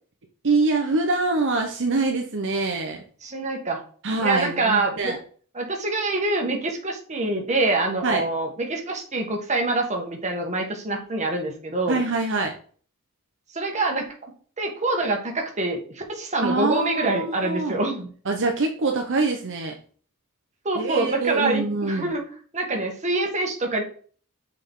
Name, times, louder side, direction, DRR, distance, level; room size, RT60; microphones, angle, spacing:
voice 1, 0.4-3.0 4.0-5.2 8.0-8.2 11.9-12.5 16.4-17.8 18.3-19.7 20.8-22.1, right 3 dB, 60° right, 2 dB, 0.9 m, -24 dB
voice 2, 3.2-3.8 4.2-5.1 5.5-12.0 13.5-14.1 14.6-18.1 20.6-22.2 22.5-23.8, right 2 dB, 35° right, 1 dB, 1.6 m, -25 dB
6.7 x 4.9 x 3.7 m, 0.44 s
head